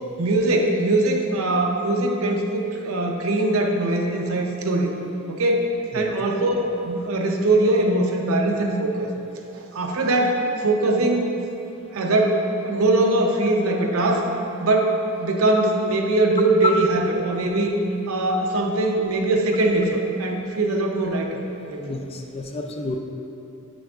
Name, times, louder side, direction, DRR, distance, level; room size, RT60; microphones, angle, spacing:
voice 1, 0.2-4.9 5.3-9.1 9.6-11.3 11.9-14.3 14.6-17.7 18.1-21.4 21.7-21.8, right 2 dB, 90° right, 2 dB, 0.7 m, -21 dB
voice 2, 21.8-23.0, left 2 dB, 30° left, 4 dB, 0.4 m, -31 dB
7.8 x 6.1 x 2.4 m, 2.8 s
head